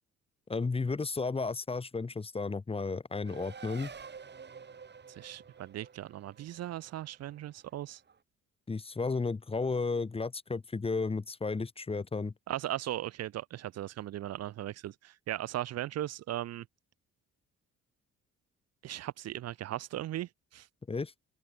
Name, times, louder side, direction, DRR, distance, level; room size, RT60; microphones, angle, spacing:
voice 1, 0.5-3.9 8.7-12.3 20.9-21.1, left 4 dB, 20° left, 1.1 m, -33 dB
Race car auto racing, 3.2-8.2, right 6 dB, 35° right, 6.9 m, -50 dB
voice 2, 5.1-8.0 12.5-16.7 18.8-20.7, right 13 dB, 60° right, 0.7 m, -38 dB
open air
cardioid pair, 105°, 29 cm